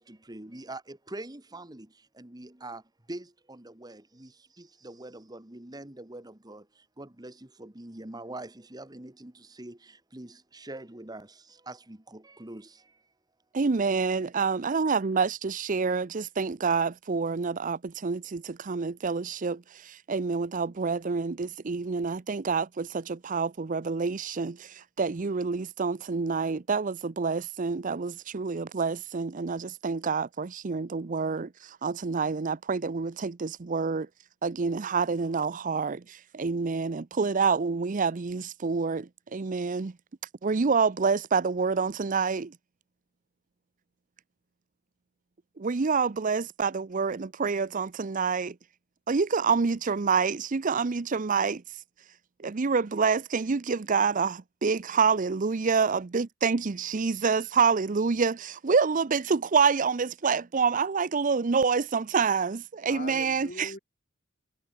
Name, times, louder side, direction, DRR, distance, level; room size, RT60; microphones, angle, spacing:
voice 1, 0.3-1.8 2.2-2.8 3.1-3.2 3.8-4.0 4.8-6.6 7.0-7.3 7.6-9.3 9.6-9.7 10.1-10.3 10.7-11.2 11.7-11.8 12.4-12.6, right 2 dB, 20° right, 1.4 m, -42 dB
voice 2, 13.5-34.1 34.4-40.0 40.4-42.6 45.6-48.6 49.1-51.6 52.4-63.7, right 5 dB, 40° right, 0.5 m, -27 dB
voice 3, 54.9-55.2 62.9-63.8, left 2 dB, 40° left, 7.2 m, -42 dB
head